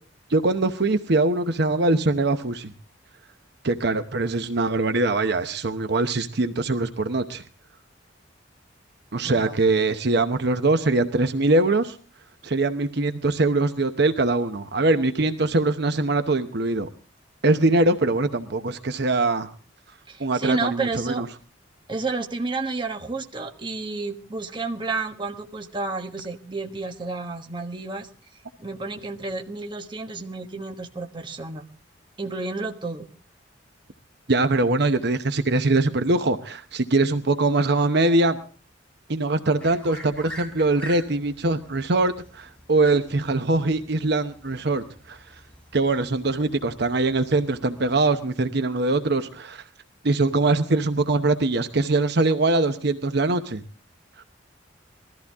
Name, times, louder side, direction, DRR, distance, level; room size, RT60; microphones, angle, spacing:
voice 1, 0.3-2.7 3.6-7.4 9.1-12.0 12.4-16.9 17.4-19.5 20.2-21.3 34.3-38.4 39.1-45.2 45.7-49.6 50.0-53.6, right 2 dB, 65° right, 9 dB, 0.9 m, -22 dB
voice 2, 20.1-21.2 21.9-28.1 28.6-31.6 32.2-33.1, right 3 dB, 25° right, 4 dB, 1.4 m, -31 dB
sound 1, 39.6-47.9, equal, 5° left, 3.3 m, -46 dB
20.5 x 14.0 x 3.6 m, 0.38 s
head